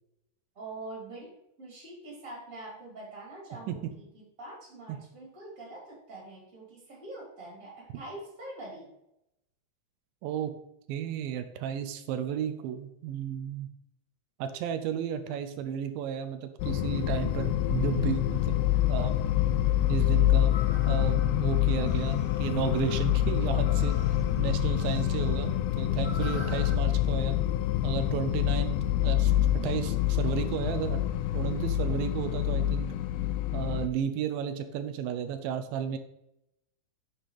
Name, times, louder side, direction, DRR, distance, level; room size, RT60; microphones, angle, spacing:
voice 1, 0.5-1.3 1.6-8.9, right 2 dB, 25° right, -3 dB, 3.3 m, -44 dB
voice 2, 10.9-13.7 14.4-18.6 18.9-19.2 19.9-20.6 20.9-24.0 24.4-27.4 27.8-29.3 29.6-31.0 31.3-32.9 33.5-36.0, right 8 dB, 90° right, 8 dB, 2.4 m, -33 dB
sound 1, 16.6-33.9, left 12 dB, 85° left, 2.4 m, -26 dB
sound 2, 20.5-26.7, left 2 dB, 55° left, 3.1 m, -44 dB
9.0 x 7.4 x 3.3 m, 0.84 s
omnidirectional pair, 4.1 m